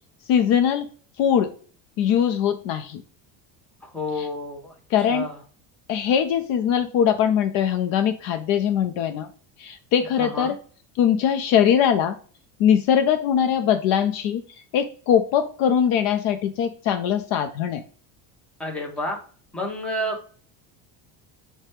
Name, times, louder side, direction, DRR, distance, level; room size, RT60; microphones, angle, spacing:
voice 1, 0.3-0.9 1.2-1.5 2.0-3.0 4.2-4.3 4.9-5.3 5.9-9.3 9.6-10.6 11.0-12.1 12.6-14.4 14.7-17.8, left 8 dB, 55° left, 8 dB, 0.5 m, -21 dB
voice 2, 3.9-4.7 5.1-5.3 10.2-10.5 18.6-19.2 19.5-20.3, left 1 dB, 5° left, -1 dB, 0.7 m, -29 dB
4.9 x 2.2 x 4.3 m, 0.44 s
cardioid pair, 155°, 41 cm